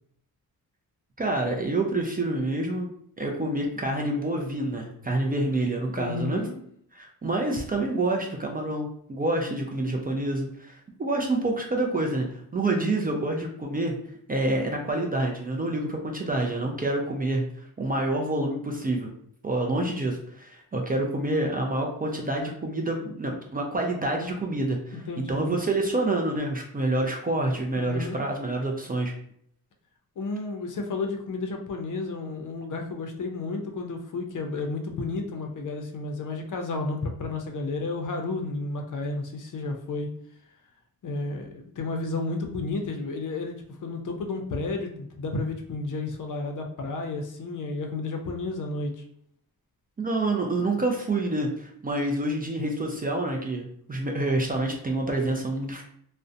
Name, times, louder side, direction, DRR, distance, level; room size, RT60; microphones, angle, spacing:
voice 1, 1.2-2.9 3.2-6.4 6.9-13.9 14.3-19.1 19.4-29.1 50.0-55.8, right 2 dB, 25° right, 0 dB, 0.3 m, -27 dB
voice 2, 6.0-6.6 24.9-25.6 27.7-28.2 30.2-40.1 41.0-49.0, left 3 dB, 55° left, 3 dB, 0.5 m, -32 dB
2.5 x 2.1 x 2.5 m, 0.68 s
cardioid pair, 100°, 37 cm